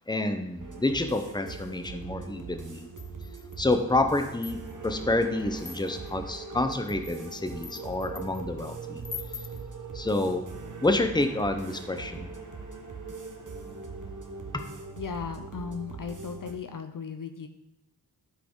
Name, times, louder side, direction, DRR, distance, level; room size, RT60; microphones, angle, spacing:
voice 1, 0.1-2.9 3.6-9.0 9.9-10.4 10.8-12.3 14.5-14.6, left 2 dB, 10° left, 7 dB, 1.0 m, -28 dB
sound 1, 0.6-16.5, right 4 dB, 50° right, 1.4 m, -41 dB
sound 2, 3.0-3.7 4.2-4.9 5.6-6.1 6.7-8.4 9.0-9.6, left 6 dB, 30° left, 0.5 m, -43 dB
voice 2, 15.0-17.5, left 6 dB, 55° left, 7 dB, 0.8 m, -36 dB
12.0 x 4.8 x 3.9 m, 0.90 s
cardioid pair, 40°, 40 cm